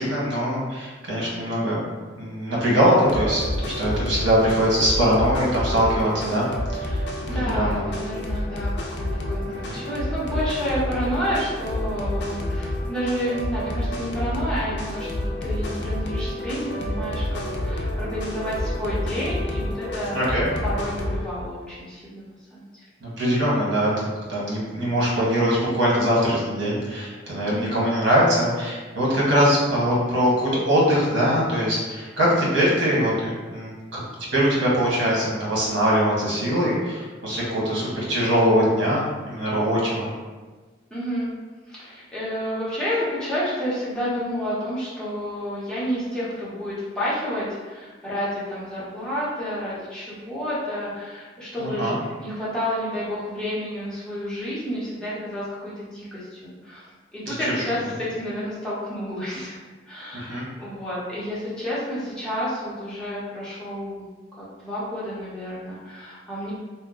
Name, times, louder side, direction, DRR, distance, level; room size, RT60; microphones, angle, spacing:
voice 1, 0.0-1.8 2.2-7.0 7.5-7.8 9.6-9.8 20.1-20.5 23.0-34.0 34.3-40.1 51.6-52.0 57.3-57.4 60.1-60.5, equal, 85° right, -6 dB, 1.2 m, -22 dB
sound 1, 3.0-21.2, left 1 dB, 60° left, 0.5 m, -29 dB
voice 2, 7.3-20.2 20.6-22.7 27.4-27.9 40.9-41.3 41.7-51.9 52.2-56.8 57.1-59.6 59.9-64.0 64.4-66.5, equal, 5° left, -10 dB, 0.9 m, -30 dB
2.8 x 2.1 x 3.7 m, 1.3 s
head